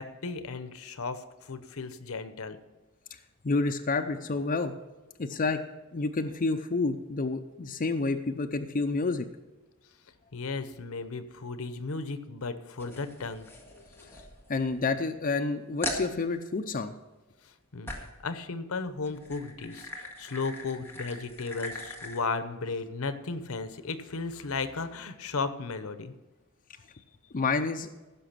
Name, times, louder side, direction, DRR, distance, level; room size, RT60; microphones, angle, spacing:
voice 1, 0.0-2.6 10.3-14.1 17.4-17.9 18.2-26.1, left 4 dB, 75° left, 11 dB, 0.8 m, -35 dB
voice 2, 3.4-4.7 5.2-5.6 5.9-9.3 14.1-14.2 14.5-16.9 27.3-27.9, left 3 dB, 40° left, 5 dB, 0.5 m, -29 dB
sound 1, 12.8-14.9 15.3-15.4 15.8-16.1 17.9-18.2 19.0-22.2, left 1 dB, 10° left, 1.8 m, -40 dB
15.5 x 6.0 x 5.8 m, 1.1 s
head